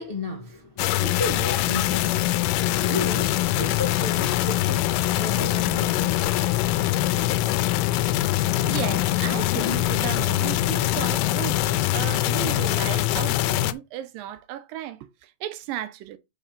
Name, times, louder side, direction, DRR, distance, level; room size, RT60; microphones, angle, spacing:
voice 1, 0.0-6.7, left 2 dB, 35° left, 0.8 m, -34 dB
sound 1, 0.8-13.7, left 15 dB, 85° left, 2.3 m, -23 dB
voice 2, 8.6-16.2, right 12 dB, 85° right, 2.5 m, -35 dB
5.9 x 5.0 x 5.3 m
omnidirectional pair, 3.9 m